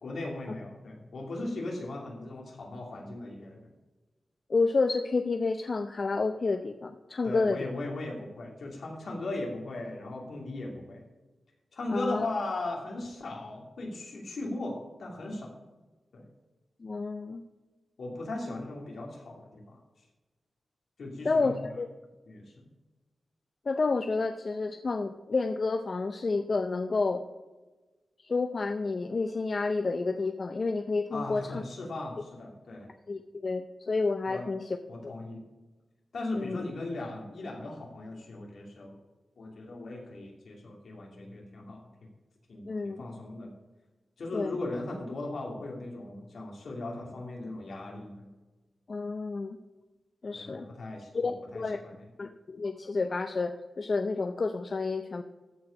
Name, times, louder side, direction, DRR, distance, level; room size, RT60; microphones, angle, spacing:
voice 1, 0.0-3.6 7.2-11.0 11.7-15.5 16.1-16.3 18.0-19.8 21.0-21.7 22.3-22.7 31.1-32.9 34.3-34.4 34.9-35.4 36.1-39.0 39.4-41.9 42.5-43.5 44.2-48.3 50.3-51.6 51.9-52.0, left 2 dB, 80° left, -1 dB, 2.6 m, -38 dB
voice 2, 4.5-7.7 11.9-12.3 16.8-17.4 21.2-21.9 23.7-27.2 28.2-31.6 33.1-34.8 35.0-35.1 36.3-36.7 42.6-43.0 44.3-44.5 48.9-49.6 50.2-50.7 51.1-51.8 52.2-55.2, left 3 dB, 50° left, 7 dB, 0.5 m, -30 dB
14.0 x 4.7 x 5.2 m, 1.2 s
cardioid pair, 70°, 0 cm